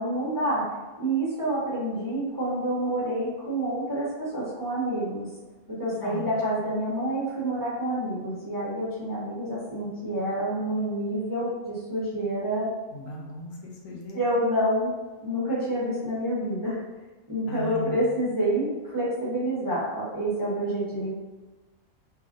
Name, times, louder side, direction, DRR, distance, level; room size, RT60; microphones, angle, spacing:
voice 1, 0.0-5.3 5.7-12.7 14.1-14.9 15.2-16.8 17.3-21.1, right 1 dB, 15° right, -10 dB, 0.9 m, -28 dB
voice 2, 6.0-6.3 12.9-14.2 17.5-18.0, right 1 dB, 85° left, -2 dB, 1.1 m, -37 dB
2.9 x 2.6 x 2.5 m, 1.2 s
omnidirectional pair, 1.4 m